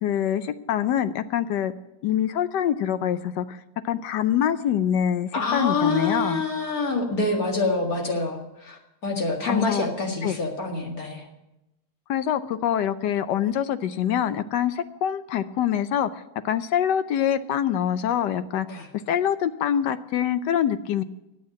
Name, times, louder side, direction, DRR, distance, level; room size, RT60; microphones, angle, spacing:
voice 1, 0.0-1.7 2.0-6.4 9.5-9.9 10.2-10.4 12.1-16.1 16.4-18.7 19.1-21.0, left 9 dB, 75° left, 12 dB, 1.2 m, -25 dB
voice 2, 5.3-11.3 18.7-18.9, left 3 dB, 50° left, 1 dB, 2.4 m, -26 dB
11.5 x 8.2 x 8.4 m, 0.92 s
omnidirectional pair, 2.0 m